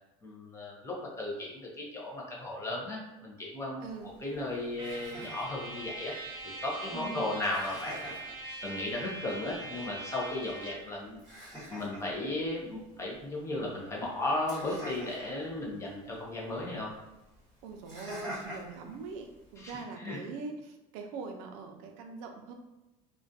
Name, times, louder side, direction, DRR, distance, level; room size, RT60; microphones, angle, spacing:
voice 1, 0.2-6.1 6.6-8.2 8.6-11.2 11.7-16.9 19.6-20.2, left 2 dB, 15° left, -3 dB, 0.4 m, -35 dB
Laughter, 3.8-19.8, equal, 5° right, 1.0 m, -49 dB
Trumpet, 4.8-10.9, right 2 dB, 30° right, 0.6 m, -42 dB
voice 2, 6.9-7.3 17.6-22.5, right 4 dB, 70° right, 4 dB, 0.5 m, -42 dB
2.3 x 2.2 x 2.5 m, 1.0 s
cardioid pair, 165°, 17 cm